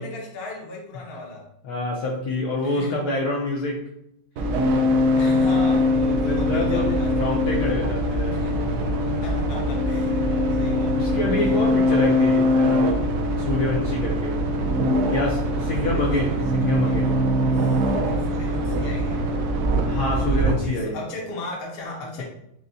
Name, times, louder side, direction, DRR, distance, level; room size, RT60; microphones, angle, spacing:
voice 1, 0.0-1.4 2.6-3.0 5.2-7.8 8.3-8.6 9.2-11.2 11.7-12.3 15.6-16.5 16.7-17.3 17.5-19.3 20.3-22.2, left 1 dB, 50° left, -1 dB, 0.7 m, -37 dB
voice 2, 1.6-3.8 6.1-8.5 11.0-13.0 13.4-14.4 15.1-17.2 19.8-21.0, left 2 dB, 70° left, -2 dB, 1.0 m, -27 dB
sound 1, 4.4-20.5, left 1 dB, 75° right, 0.9 m, -22 dB
6.2 x 2.1 x 2.7 m, 0.76 s
omnidirectional pair, 2.2 m